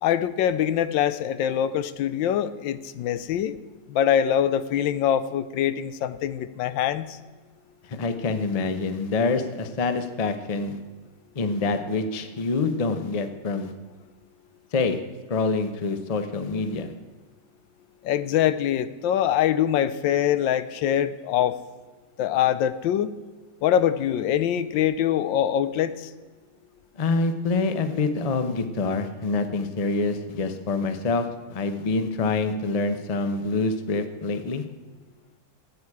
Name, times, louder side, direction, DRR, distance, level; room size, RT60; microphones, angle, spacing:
voice 1, 0.0-3.6 3.9-7.2 18.0-21.6 22.2-23.1 23.6-26.1, left 10 dB, 85° left, 14 dB, 1.4 m, -24 dB
voice 2, 7.9-10.8 11.3-13.7 14.7-15.0 15.3-16.9 27.0-34.6, left 3 dB, 35° left, 9 dB, 0.6 m, -26 dB
14.5 x 9.3 x 4.8 m, 1.4 s
omnidirectional pair, 2.0 m